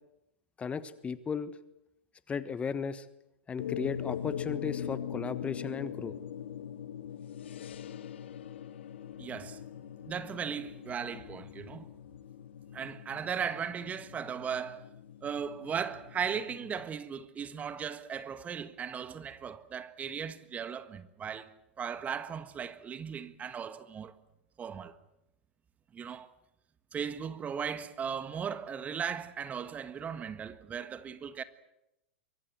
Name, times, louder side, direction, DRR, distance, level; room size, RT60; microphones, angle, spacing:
voice 1, 0.6-1.5 2.3-3.0 3.5-6.1, left 6 dB, 20° left, 1.3 m, -35 dB
sound 1, 3.6-16.9, left 9 dB, 70° left, 1.5 m, -42 dB
voice 2, 9.2-9.6 10.1-11.9 12.7-14.9 15.2-21.5 21.8-24.1 24.6-24.9 25.9-26.3 26.9-31.4, right 7 dB, 25° right, 1.6 m, -37 dB
24.0 x 23.5 x 8.0 m
hypercardioid pair, 100°, 6 cm